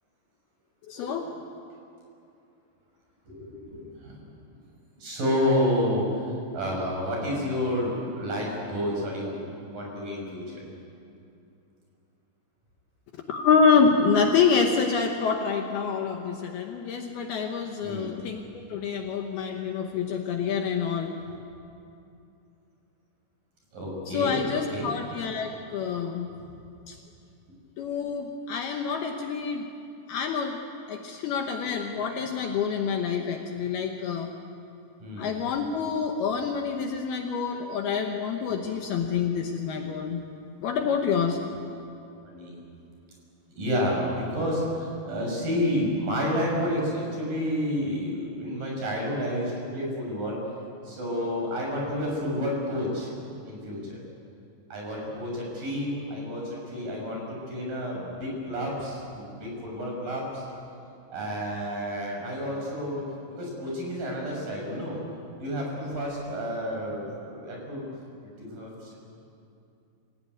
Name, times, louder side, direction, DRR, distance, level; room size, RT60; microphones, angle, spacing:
voice 1, 0.9-1.3 13.3-21.1 24.1-26.3 26.9-27.0 27.8-29.7 30.1-30.6 30.9-34.3 35.2-40.2 40.6-41.4, left 6 dB, 70° left, 3 dB, 2.7 m, -27 dB
voice 2, 3.3-4.1 5.0-6.1 6.5-10.6 17.8-18.1 21.3-21.4 23.7-24.9 35.0-35.3 42.2-42.6 43.6-50.4 50.9-53.1 53.5-54.0 54.7-59.0 59.4-60.4 61.1-63.0 63.3-65.0 65.4-67.8 68.4-69.0, equal, 45° right, -2 dB, 7.5 m, -30 dB
25.5 x 17.5 x 9.5 m, 2.7 s
omnidirectional pair, 5.3 m